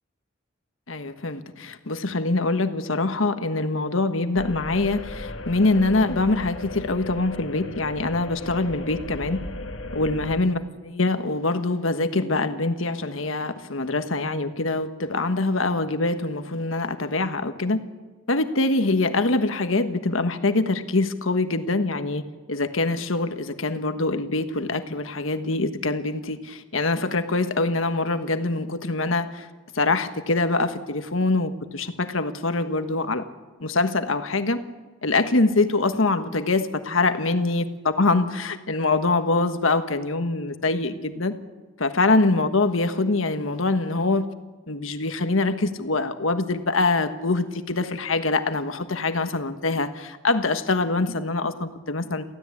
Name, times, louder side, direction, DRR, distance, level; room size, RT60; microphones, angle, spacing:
voice 1, 0.9-9.4 9.9-17.8 18.3-22.2 22.5-29.5 29.7-33.2 33.6-34.6 35.0-41.3 41.8-44.3 44.7-52.2, left 3 dB, 90° left, 8 dB, 1.4 m, -24 dB
sound 1, 4.4-10.4, left 2 dB, 75° left, 1.8 m, -36 dB
24.0 x 15.5 x 8.6 m, 1.3 s
head